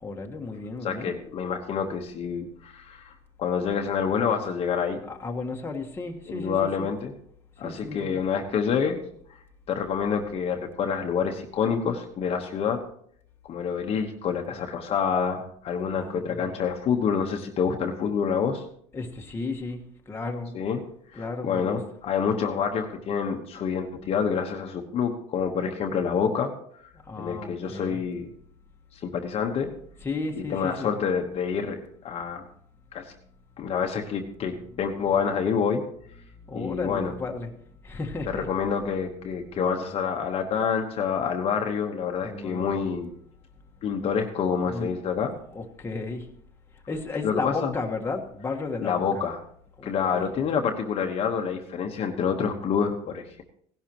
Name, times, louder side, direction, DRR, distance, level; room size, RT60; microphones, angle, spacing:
voice 1, 0.0-1.1 5.0-6.9 7.6-8.2 15.9-16.5 18.9-20.6 21.1-21.8 27.0-28.0 30.0-30.9 33.2-33.3 34.7-34.8 36.5-37.5 37.8-38.5 42.2-42.8 44.6-44.9 45.3-46.3 46.7-49.0 49.8-50.3, left 3 dB, 15° left, 1 dB, 1.5 m, -34 dB
voice 2, 0.8-5.0 6.3-7.1 7.6-9.0 9.7-12.8 13.4-18.6 20.5-20.8 21.1-26.5 27.2-28.3 28.9-29.7 30.5-32.5 32.9-33.1 33.6-35.8 36.5-37.1 38.3-43.1 43.8-45.3 47.2-47.7 48.8-49.4 49.8-53.4, left 6 dB, 45° left, 3 dB, 1.2 m, -27 dB
17.5 x 11.5 x 3.0 m, 0.65 s
cardioid pair, 120°, 14 cm